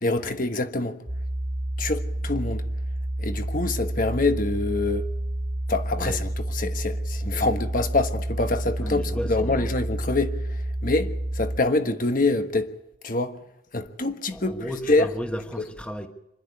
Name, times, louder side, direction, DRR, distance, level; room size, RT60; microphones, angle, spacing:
voice 1, 0.0-1.0 1.8-2.7 3.2-5.1 5.7-12.7 13.0-13.4 13.7-15.1, left 2 dB, 45° left, 1.3 m, -26 dB
sound 1, 1.1-11.6, right 1 dB, 20° right, 1.2 m, -29 dB
voice 2, 8.8-9.6 14.3-16.1, equal, 5° left, 1.3 m, -34 dB
25.5 x 11.5 x 9.7 m
head